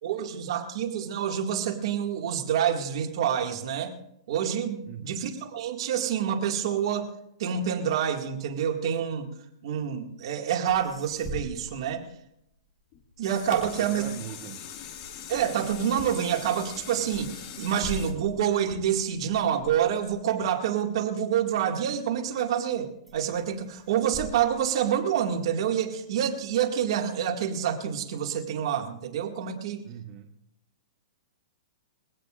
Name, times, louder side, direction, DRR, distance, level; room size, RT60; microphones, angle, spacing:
voice 1, 0.0-3.9 4.3-7.1 7.4-9.3 9.6-12.0 13.2-14.0 15.3-29.8, right 9 dB, 60° right, 3 dB, 2.1 m, -27 dB
voice 2, 4.9-5.3 13.6-14.6 29.8-30.3, right 9 dB, 25° right, 3 dB, 1.2 m, -42 dB
sound 1, 10.7-12.8 13.2-21.9 22.4-22.8 23.1-25.6 26.0-27.0, left 1 dB, ahead, 4.5 m, -45 dB
sound 2, 12.9-19.3 19.8-19.9, left 5 dB, 40° left, 2.0 m, -41 dB
22.0 x 16.5 x 2.5 m, 0.78 s
hypercardioid pair, 150°, 3 cm